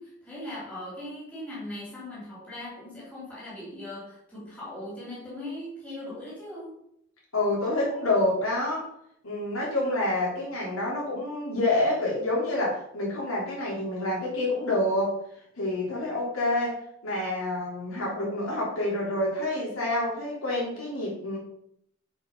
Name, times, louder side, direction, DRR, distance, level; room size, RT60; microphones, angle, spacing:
voice 1, 0.0-6.7, left 1 dB, 5° left, -8 dB, 3.1 m, -39 dB
voice 2, 7.3-8.9 9.2-15.2 15.6-21.4, left 2 dB, 75° left, -5 dB, 3.4 m, -28 dB
7.1 x 5.2 x 5.5 m, 0.71 s
head